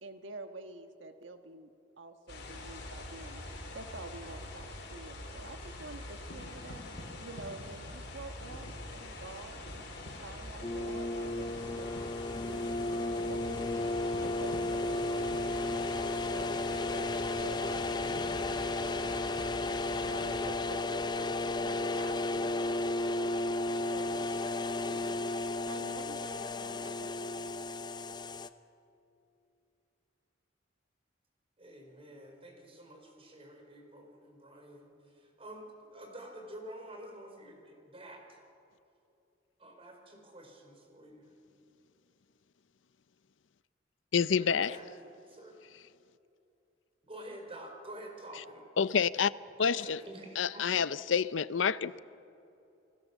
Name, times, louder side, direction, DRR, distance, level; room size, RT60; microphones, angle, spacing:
voice 1, 0.0-1.7 2.0-8.7 8.9-9.7 10.0-12.7 13.3-13.6 14.0-18.2 18.6-19.3 19.9-24.4 24.9-25.3 25.7-27.6, right 2 dB, 85° right, 1.4 m, -48 dB
sound 1, 2.3-20.5, left 2 dB, 65° left, 4.9 m, -44 dB
sound 2, 10.6-28.5, left 2 dB, 25° left, 0.7 m, -33 dB
voice 2, 31.6-38.4 39.6-41.3 44.4-44.9 45.3-45.6 47.0-48.6 49.6-50.6, right 1 dB, 30° right, 4.7 m, -49 dB
voice 3, 44.1-44.8 48.8-49.3 49.6-50.0 50.4-52.0, left 6 dB, 85° left, 0.6 m, -28 dB
29.5 x 20.5 x 7.2 m
head